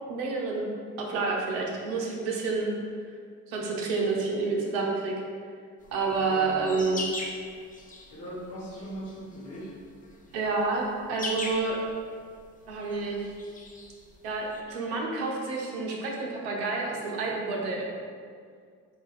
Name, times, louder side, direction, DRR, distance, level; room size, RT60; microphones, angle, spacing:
voice 1, 0.1-0.7 1.0-2.7 3.5-5.1 5.9-7.0 10.3-11.8 12.7-13.3 14.2-17.9, right 3 dB, 80° right, -1 dB, 0.8 m, -29 dB
sound 1, 5.8-14.6, left 2 dB, 20° left, 0.7 m, -41 dB
voice 2, 6.0-7.0 8.1-9.7, equal, 60° left, -10 dB, 1.4 m, -40 dB
5.0 x 2.4 x 4.0 m, 2.1 s
hypercardioid pair, 45°, 37 cm